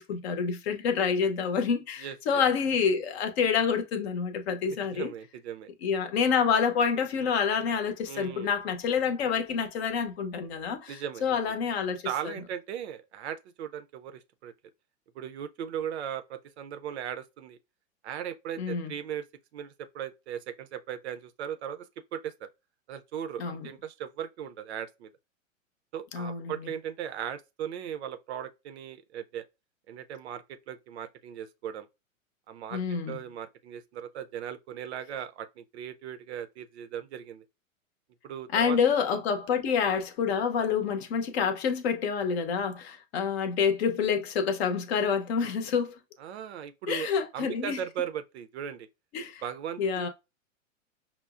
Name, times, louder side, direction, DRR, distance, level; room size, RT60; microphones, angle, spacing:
voice 1, 0.0-5.1 5.8-12.0 18.6-18.9 23.4-23.7 26.1-26.6 32.7-33.2 38.5-46.0 46.9-47.8 49.1-49.4 49.8-50.1, left 6 dB, 50° left, 0.7 m, -27 dB
voice 2, 2.0-2.4 4.9-5.7 8.1-8.5 10.9-11.3 12.0-14.5 15.1-17.6 18.0-19.3 19.5-22.5 22.9-25.1 25.9-29.4 29.9-31.9 32.5-32.8 33.1-37.4 38.2-38.8 46.2-48.9 49.4-50.1, right 9 dB, 55° right, 0.5 m, -38 dB
5.5 x 2.0 x 2.3 m
hypercardioid pair, 110°, 40 cm